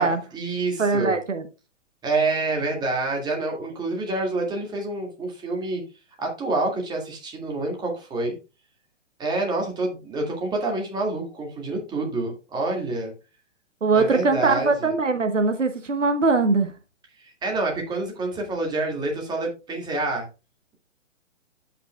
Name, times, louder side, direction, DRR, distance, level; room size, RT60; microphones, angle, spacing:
voice 1, 0.0-1.2 2.0-5.8 6.2-8.3 9.2-13.1 13.9-14.9 17.2-20.3, right 2 dB, 10° right, 0 dB, 2.0 m, -27 dB
voice 2, 0.8-1.5 13.8-16.7, right 4 dB, 75° right, 8 dB, 1.2 m, -21 dB
14.0 x 5.8 x 2.3 m, 0.30 s
figure-of-eight pair, 125°, 37 cm